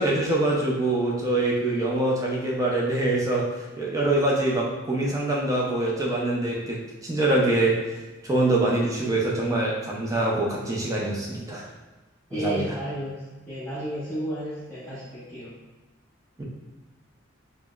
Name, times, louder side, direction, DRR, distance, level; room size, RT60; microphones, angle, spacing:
voice 1, 0.0-7.7 8.2-11.6 12.3-12.6 16.4-16.5, right 2 dB, 15° right, -3 dB, 0.4 m, -24 dB
voice 2, 12.3-15.5, equal, 10° left, -14 dB, 0.8 m, -33 dB
3.8 x 2.1 x 2.3 m, 1.2 s
head